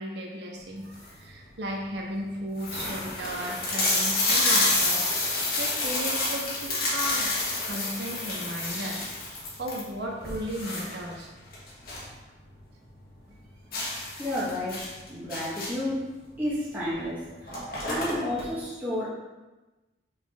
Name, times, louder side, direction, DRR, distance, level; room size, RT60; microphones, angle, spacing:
voice 1, 0.0-7.3 7.6-9.0 9.6-11.3, equal, 75° right, -1 dB, 1.1 m, -35 dB
sound 1, 0.7-1.2 1.9-2.0 2.2-2.3 2.6-12.1 12.5-12.6 13.0-13.1 13.7-15.9 16.9-17.0 17.3-18.4, left 2 dB, 55° left, 1.6 m, -29 dB
voice 2, 14.2-14.8 15.1-16.1 16.4-17.3 17.9-19.1, left 1 dB, 10° right, -9 dB, 1.1 m, -30 dB
5.4 x 4.4 x 4.0 m, 1.1 s
head